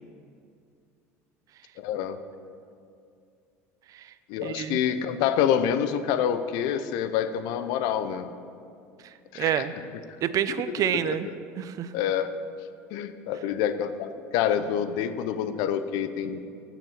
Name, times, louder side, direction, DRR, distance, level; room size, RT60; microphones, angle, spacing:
voice 1, 1.8-2.2 4.3-8.3 9.3-9.7 10.8-11.2 11.9-12.3 12.9-16.5, left 9 dB, 65° left, 11 dB, 0.7 m, -27 dB
voice 2, 4.4-4.8 9.3-9.7 10.2-11.3 11.6-11.9, right 10 dB, 50° right, 13 dB, 0.6 m, -28 dB
15.5 x 6.1 x 5.8 m, 2.4 s
hypercardioid pair, 75°, 8 cm